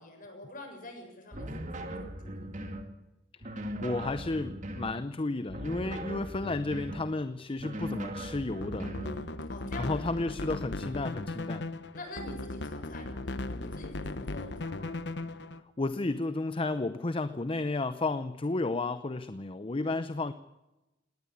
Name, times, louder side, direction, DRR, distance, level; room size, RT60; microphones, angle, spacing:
voice 1, 0.0-2.5 5.8-6.0 9.0-10.0 11.9-14.9 19.8-20.1, left 2 dB, 50° left, 4 dB, 7.0 m, -46 dB
sound 1, 1.3-2.9 3.4-5.0 5.5-7.1 7.6-9.2, right 1 dB, 45° right, 2.4 m, -39 dB
voice 2, 3.5-8.9 9.8-11.7 15.8-20.3, left 2 dB, 30° left, 12 dB, 0.7 m, -32 dB
sound 2, 8.5-15.6, left 2 dB, 65° left, 1.1 m, -37 dB
19.0 x 19.0 x 8.6 m, 0.99 s
head